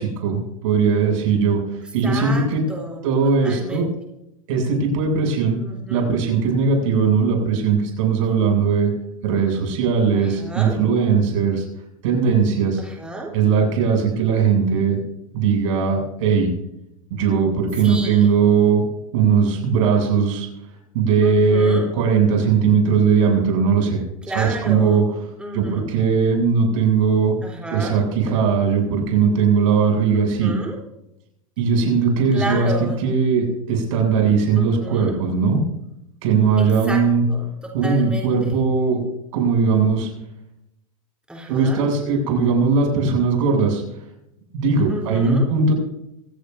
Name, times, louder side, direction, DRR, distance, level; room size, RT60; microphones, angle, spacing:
voice 1, 0.0-1.6 1.9-2.6 3.0-3.9 4.5-5.6 5.9-8.9 9.2-11.6 12.0-12.8 13.3-15.0 15.3-16.5 17.1-18.8 19.1-20.5 20.9-24.0 24.3-25.0 25.5-27.3 27.7-30.5 31.6-32.7 33.0-35.6 36.2-37.2 37.7-39.0 39.3-40.1 41.5-43.8 44.5-45.7, right 5 dB, 65° right, 2 dB, 7.9 m, -19 dB
voice 2, 1.8-3.8 5.6-6.2 10.1-10.8 12.8-13.3 17.8-18.4 21.2-21.9 24.2-25.0 25.4-25.9 27.4-28.0 30.1-30.8 32.3-33.0 34.5-35.2 36.6-37.0 37.3-38.6 41.3-41.9 44.9-45.5, right 2 dB, 5° right, -1 dB, 3.9 m, -32 dB
24.5 x 17.0 x 2.7 m, 0.82 s
hypercardioid pair, 100°, 18 cm